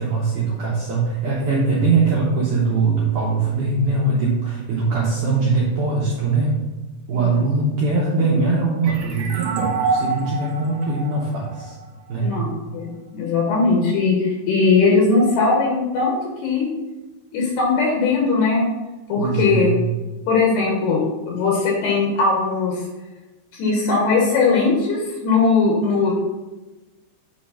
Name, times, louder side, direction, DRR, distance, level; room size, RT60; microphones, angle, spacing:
voice 1, 0.0-6.6 7.1-11.8 12.1-12.4 19.2-19.8, right 3 dB, 90° right, -4 dB, 1.7 m, -21 dB
sound 1, 8.8-12.3, right 4 dB, 70° right, 3.1 m, -27 dB
voice 2, 12.2-16.7 17.3-18.7 19.1-19.7 20.3-22.8 23.5-26.1, left 4 dB, 70° left, -2 dB, 3.0 m, -19 dB
8.3 x 3.2 x 5.6 m, 1.1 s
omnidirectional pair, 5.1 m